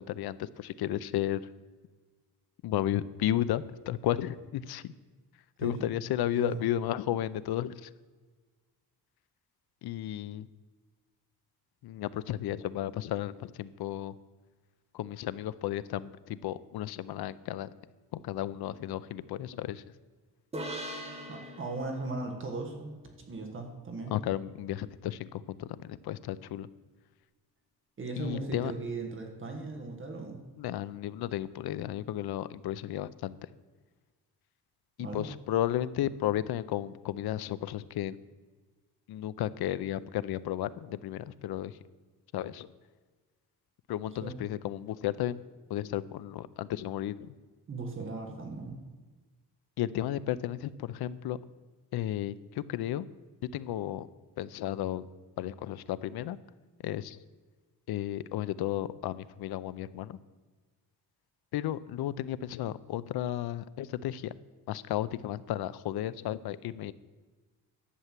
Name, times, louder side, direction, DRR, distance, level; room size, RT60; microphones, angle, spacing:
voice 1, 0.0-1.4 2.6-4.9 5.6-7.9 9.8-10.5 11.8-14.1 14.9-17.7 18.1-19.8 24.1-26.7 28.2-28.7 30.6-33.3 35.0-38.2 39.1-41.7 42.3-42.7 43.9-45.4 45.7-47.3 49.8-51.4 51.9-53.1 53.5-54.1 54.4-55.0 55.4-56.4 56.8-57.2 57.9-60.2 61.5-64.3 64.7-66.9, left 12 dB, 75° left, 16 dB, 0.6 m, -33 dB
voice 2, 6.3-6.6 21.3-24.1 28.0-30.4 35.0-35.2 44.2-44.3 47.7-48.8, right 3 dB, 30° right, 3 dB, 1.6 m, -38 dB
sound 1, 20.5-24.0, right 1 dB, 15° right, 1.6 m, -43 dB
11.5 x 8.1 x 7.4 m, 1.4 s
cardioid pair, 160°, 39 cm